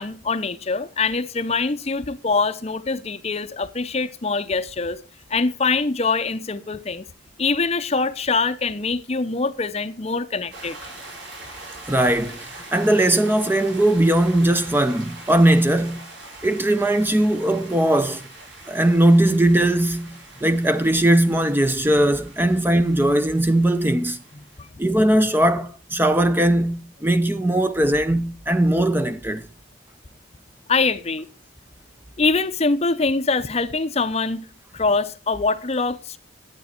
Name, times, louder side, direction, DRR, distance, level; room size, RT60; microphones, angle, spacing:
voice 1, 0.0-5.0 5.3-7.1 7.4-10.8 24.6-24.7 30.7-31.3 32.2-34.5 34.7-36.2, left 4 dB, 30° left, 0.6 m, -23 dB
sound 1, 10.5-24.7, right 2 dB, 65° right, 6.2 m, -42 dB
voice 2, 11.9-16.1 16.4-18.2 18.7-24.2 24.8-29.4, right 1 dB, 10° right, 0.5 m, -19 dB
12.0 x 9.0 x 4.3 m
head